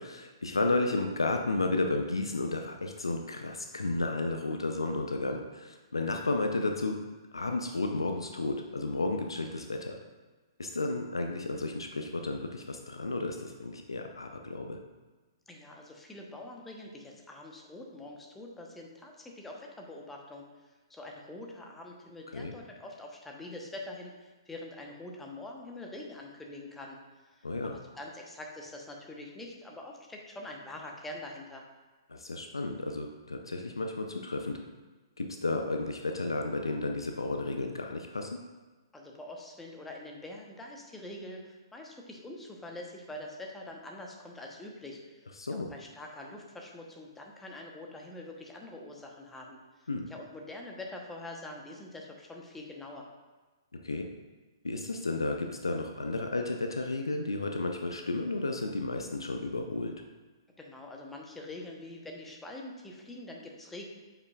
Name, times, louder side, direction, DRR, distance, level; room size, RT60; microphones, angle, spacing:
voice 1, 0.0-6.9 7.3-10.0 10.6-14.8 22.3-22.5 27.4-27.8 32.1-34.6 35.2-38.4 45.4-45.7 49.9-50.1 53.8-54.1 54.6-59.9, left 2 dB, 80° left, 4 dB, 0.5 m, -32 dB
voice 2, 15.5-27.0 27.2-31.6 38.9-45.2 45.5-53.1 60.6-63.8, left 1 dB, 10° left, 0 dB, 0.9 m, -45 dB
8.0 x 5.6 x 2.4 m, 1.3 s
figure-of-eight pair, 125°, 2 cm